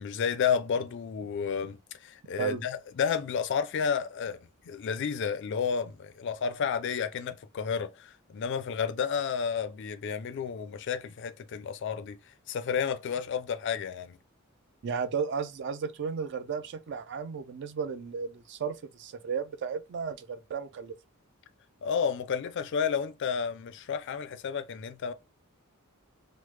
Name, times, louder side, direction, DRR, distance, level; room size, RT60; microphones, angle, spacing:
voice 1, 0.0-4.4 4.7-12.2 12.5-14.2 21.8-25.1, left 6 dB, 55° left, 0.4 m, -31 dB
voice 2, 14.8-20.9, right 6 dB, 55° right, 0.4 m, -34 dB
3.1 x 2.0 x 3.2 m
head